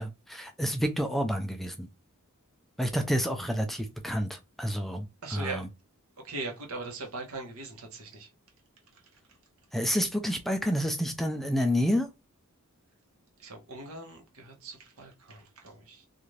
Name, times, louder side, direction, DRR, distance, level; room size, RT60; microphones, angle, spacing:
voice 1, 0.0-1.9 2.8-5.7 9.7-12.1, equal, ahead, 0.3 m, -29 dB
voice 2, 5.2-5.6 6.2-8.3 13.4-16.1, right 3 dB, 70° right, 0.9 m, -40 dB
2.5 x 2.4 x 3.1 m
head